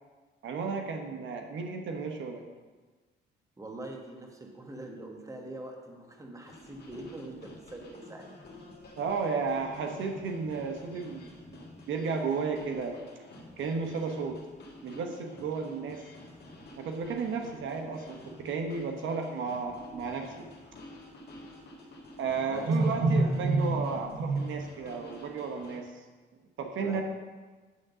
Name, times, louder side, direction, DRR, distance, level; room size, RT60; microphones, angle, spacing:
voice 1, 0.4-2.4 9.0-11.2 11.5-11.6 11.9-13.0 13.6-14.4 14.8-16.0 16.8-20.5 22.2-26.0 26.6-27.0, right 4 dB, 75° right, 3 dB, 1.0 m, -31 dB
voice 2, 3.6-8.4 22.5-23.4 23.9-24.1 26.8-27.0, right 1 dB, 15° right, 1 dB, 1.3 m, -44 dB
sound 1, 6.5-25.8, left 1 dB, 55° left, 1.6 m, -50 dB
9.5 x 3.7 x 6.6 m, 1.3 s
cardioid pair, 90°, 20 cm